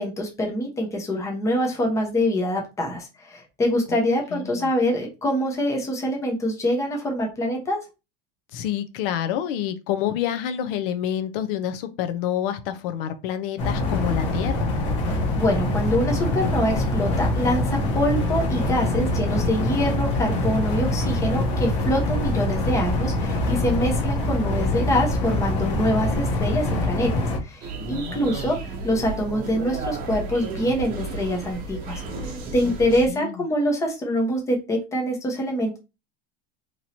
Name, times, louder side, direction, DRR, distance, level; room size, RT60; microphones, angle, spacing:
voice 1, 0.0-7.8 15.1-35.8, equal, 10° left, 0.7 m, -25 dB
voice 2, 4.3-4.7 8.5-14.7 27.9-28.4 32.6-32.8 33.1-33.4, left 10 dB, 75° left, 0.6 m, -28 dB
sound 1, 13.6-27.4, left 2 dB, 50° left, 1.1 m, -24 dB
sound 2, 27.6-33.1, right 3 dB, 30° right, 0.8 m, -33 dB
3.0 x 2.6 x 4.2 m
cardioid pair, 175°, 29 cm